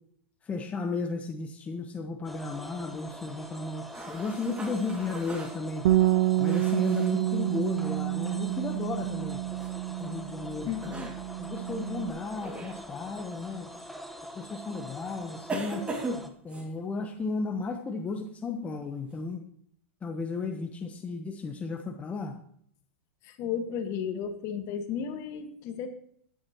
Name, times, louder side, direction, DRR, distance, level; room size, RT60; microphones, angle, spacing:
voice 1, 0.4-5.9 6.4-9.4 10.0-10.7 11.4-13.7 14.3-15.9 16.4-19.4 20.0-22.4, left 4 dB, 20° left, 5 dB, 1.0 m, -34 dB
sound 1, 2.2-16.3, equal, ahead, 1.2 m, -44 dB
sound 2, 3.9-7.2 9.6-9.8 10.7-11.2 12.4-12.8 13.7-13.9 15.5-16.7, right 2 dB, 15° right, 2.3 m, -38 dB
Bass guitar, 5.8-12.1, right 15 dB, 70° right, 0.5 m, -28 dB
voice 2, 10.6-11.1 23.2-25.9, left 7 dB, 45° left, 7 dB, 1.7 m, -34 dB
14.0 x 10.0 x 3.0 m, 0.65 s
hypercardioid pair, 125°, 7 cm